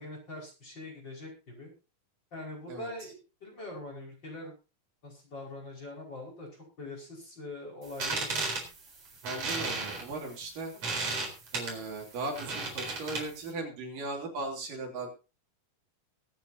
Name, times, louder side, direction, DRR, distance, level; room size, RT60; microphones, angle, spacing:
voice 1, 0.0-1.7 2.3-4.5 5.0-8.4, left 2 dB, 30° left, 0 dB, 5.6 m, -43 dB
sound 1, 7.8-13.5, right 3 dB, 45° right, 5.1 m, -35 dB
voice 2, 9.2-10.7 11.5-15.1, right 2 dB, 70° right, 1 dB, 4.8 m, -37 dB
22.5 x 9.2 x 2.8 m, 0.31 s
omnidirectional pair, 4.0 m